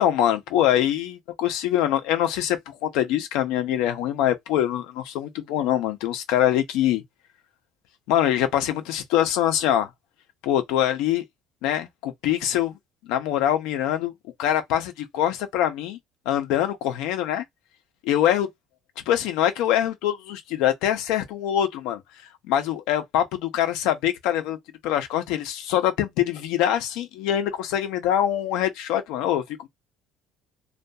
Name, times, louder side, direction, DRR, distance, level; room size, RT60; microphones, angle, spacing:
voice 1, 0.0-7.0 8.1-9.9 10.4-11.2 11.6-12.8 13.0-14.1 14.4-16.0 16.3-17.4 18.0-18.5 19.0-22.0 22.5-24.6 24.8-29.7, left 11 dB, 80° left, 0.7 m, -24 dB
2.7 x 2.4 x 2.3 m
cardioid pair, 140°, 0 cm